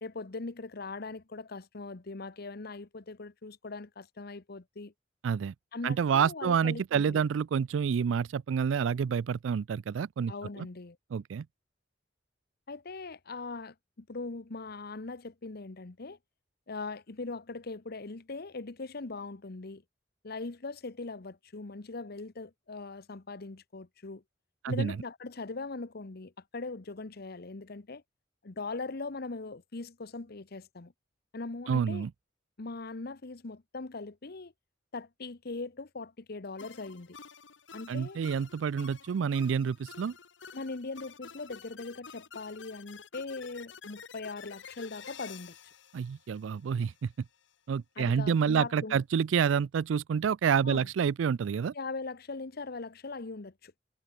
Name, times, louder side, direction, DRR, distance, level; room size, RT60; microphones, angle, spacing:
voice 1, 0.0-4.9 5.7-7.3 10.3-11.0 12.7-16.2 16.7-19.8 20.2-24.2 24.7-28.0 28.4-30.9 31.3-32.1 32.6-34.5 34.9-37.2 37.7-38.2 40.5-45.5 48.0-49.0 50.6-50.9 51.7-53.7, left 3 dB, 55° left, 1.0 m, -40 dB
voice 2, 5.2-5.5 5.8-10.7 11.1-11.5 24.6-25.0 31.7-32.1 37.9-40.1 45.9-47.1 47.7-51.7, right 7 dB, 85° right, 0.4 m, -28 dB
sound 1, 36.6-47.0, left 6 dB, 75° left, 1.8 m, -50 dB
head